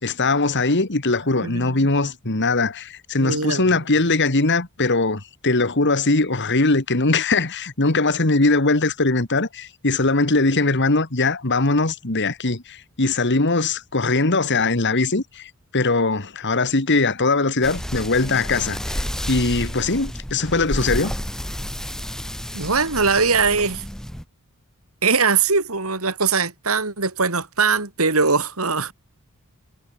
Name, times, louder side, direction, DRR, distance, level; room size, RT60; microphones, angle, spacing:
voice 1, 0.0-21.1, left 3 dB, 55° left, 2.2 m, -21 dB
voice 2, 1.4-1.8 3.2-3.7 22.5-23.8 25.0-28.9, right 4 dB, 70° right, 3.4 m, -21 dB
sound 1, 17.6-24.2, equal, ahead, 0.9 m, -31 dB
head